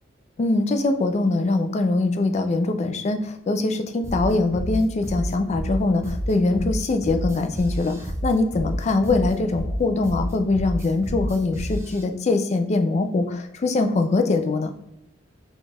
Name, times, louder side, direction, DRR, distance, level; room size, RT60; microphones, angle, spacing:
voice 1, 0.4-14.7, left 2 dB, 35° left, 7 dB, 0.4 m, -23 dB
sound 1, 4.0-12.0, equal, 15° right, 0.5 m, -29 dB
4.2 x 2.3 x 3.3 m, 0.80 s
head